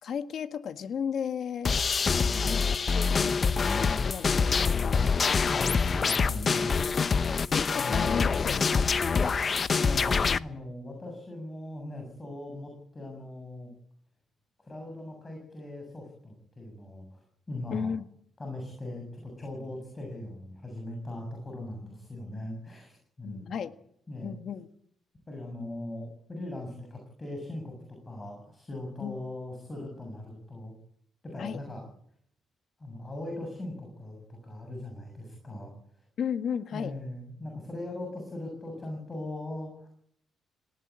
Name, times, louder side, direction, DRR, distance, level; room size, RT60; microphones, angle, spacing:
voice 1, 0.0-1.8 2.4-5.1 7.5-9.0 17.7-18.1 23.2-23.7 24.2-24.7 29.0-29.2 31.4-31.6 36.2-36.9, left 7 dB, 60° left, 9 dB, 1.6 m, -34 dB
sound 1, 1.6-10.4, left 5 dB, 40° left, 0.8 m, -25 dB
voice 2, 5.5-7.1 7.7-8.0 9.7-13.7 14.6-17.2 17.5-17.9 18.4-23.5 24.1-24.4 25.3-27.7 28.1-30.7 31.2-31.8 32.8-36.0 36.7-39.9, left 1 dB, 25° left, 2 dB, 7.7 m, -40 dB
19.5 x 18.5 x 8.8 m, 0.67 s
cardioid pair, 90°, 0 cm